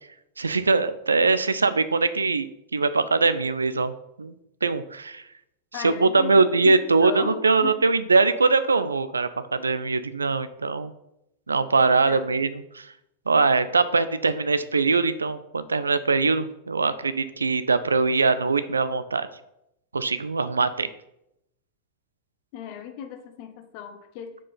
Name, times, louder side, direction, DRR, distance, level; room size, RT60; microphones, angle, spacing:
voice 1, 0.4-4.3 4.6-5.2 5.8-10.9 11.5-12.9 13.3-19.3 19.9-20.9, right 4 dB, 75° right, 14 dB, 0.4 m, -22 dB
voice 2, 5.7-7.9 12.1-12.2 22.5-24.4, left 8 dB, 45° left, 8 dB, 0.8 m, -36 dB
4.8 x 4.6 x 5.4 m, 0.83 s
figure-of-eight pair, 90°, 0 cm